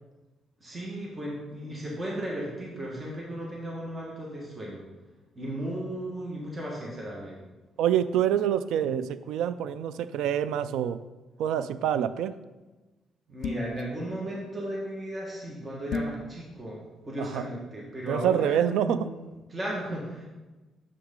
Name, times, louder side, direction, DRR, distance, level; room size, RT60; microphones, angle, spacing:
voice 1, 0.6-4.8 5.3-7.4 13.3-16.8 17.1-20.2, right 1 dB, 30° right, -4 dB, 1.6 m, -35 dB
voice 2, 7.8-11.0 11.4-12.3 17.2-17.4 18.1-19.1, right 10 dB, 85° right, 14 dB, 0.3 m, -26 dB
open whiskey bottle, 13.4-13.8 15.9-16.2, left 4 dB, 80° left, 0.4 m, -32 dB
7.0 x 6.2 x 3.7 m, 1.2 s
cardioid pair, 90°, 0 cm